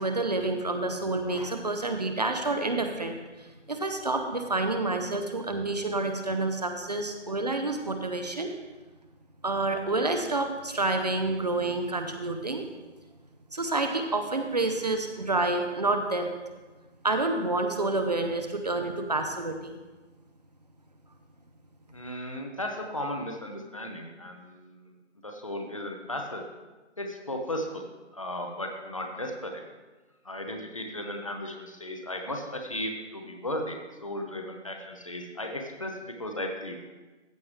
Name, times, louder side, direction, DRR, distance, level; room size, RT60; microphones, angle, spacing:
voice 1, 0.0-8.5 9.4-12.6 13.5-16.3 17.0-19.8, right 2 dB, 35° right, 5 dB, 0.7 m, -28 dB
voice 2, 21.9-24.8 25.2-26.4 27.0-29.6 30.2-36.8, left 1 dB, 30° left, 3 dB, 0.7 m, -35 dB
14.5 x 7.0 x 3.2 m, 1.2 s
figure-of-eight pair, 155°, 36 cm